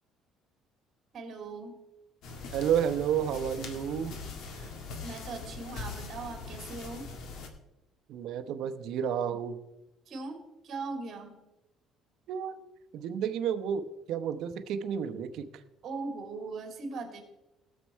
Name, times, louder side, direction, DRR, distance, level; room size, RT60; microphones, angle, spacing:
voice 1, 1.1-1.8 4.6-4.7 5.0-7.1 10.1-11.4 15.8-17.2, right 3 dB, 40° right, 4 dB, 3.0 m, -39 dB
sound 1, 2.2-7.5, left 4 dB, 65° left, 1.8 m, -42 dB
voice 2, 2.5-4.2 8.1-9.6 12.3-12.6 12.9-15.5, right 8 dB, 65° right, 10 dB, 0.9 m, -31 dB
18.0 x 7.5 x 4.6 m, 0.95 s
cardioid pair, 150°, 0 cm